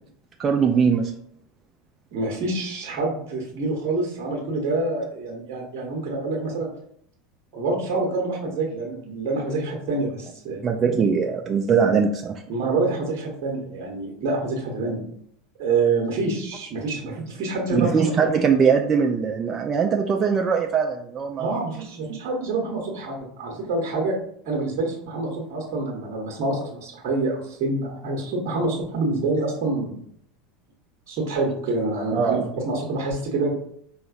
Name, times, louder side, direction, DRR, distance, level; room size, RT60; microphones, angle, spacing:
voice 1, 0.4-1.1 10.6-12.3 17.7-21.6 32.1-32.4, right 6 dB, 30° right, 2 dB, 0.3 m, -21 dB
voice 2, 2.1-6.7 7.5-10.6 12.5-15.0 15.6-18.1 21.4-24.2 24.4-30.0 31.1-33.5, right 3 dB, 45° right, -2 dB, 1.0 m, -26 dB
4.9 x 2.9 x 2.4 m, 0.68 s
figure-of-eight pair, 75°, 0 cm